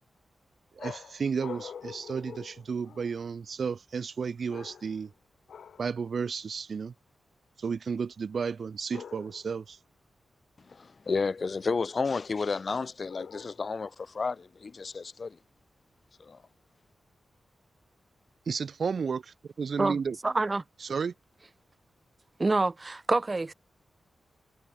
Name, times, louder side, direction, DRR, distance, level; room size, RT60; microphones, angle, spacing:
voice 1, 0.7-5.1 5.8-6.9 7.6-9.8 18.5-20.2 20.8-21.1, right 5 dB, 55° right, 1.2 m, -32 dB
sound 1, 0.8-3.3 4.5-5.1 5.5-6.0 8.9-9.6 13.1-13.8, left 7 dB, 85° left, 1.7 m, -45 dB
voice 2, 10.7-15.4 16.2-16.4, left 4 dB, 40° left, 2.2 m, -32 dB
voice 3, 20.2-20.6 22.4-23.5, right 3 dB, 25° right, 1.9 m, -26 dB
wide cardioid pair, 170°, 0 cm